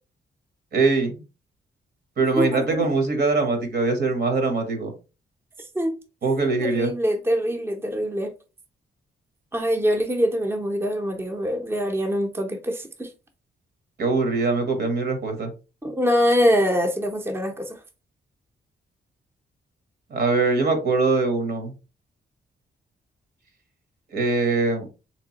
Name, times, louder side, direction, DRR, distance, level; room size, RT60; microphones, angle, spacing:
voice 1, 0.7-1.2 2.2-4.9 6.2-6.9 14.0-15.5 20.1-21.7 24.1-24.9, right 3 dB, 60° right, 1.1 m, -22 dB
voice 2, 5.6-6.0 6.6-8.3 9.5-13.1 15.8-17.8, equal, 10° right, 0.6 m, -24 dB
3.4 x 3.0 x 2.8 m
cardioid pair, 95°, 19 cm